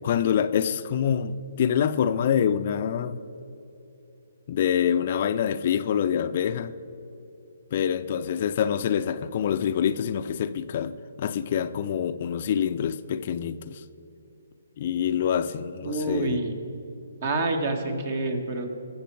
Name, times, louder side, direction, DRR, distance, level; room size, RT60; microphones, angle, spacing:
voice 1, 0.0-3.2 4.5-6.7 7.7-13.8 14.8-16.4, left 8 dB, 45° left, 11 dB, 0.5 m, -26 dB
voice 2, 15.8-16.6 17.2-18.7, right 2 dB, 50° right, 6 dB, 1.8 m, -27 dB
21.0 x 7.2 x 4.7 m, 2.9 s
figure-of-eight pair, 135°, 0 cm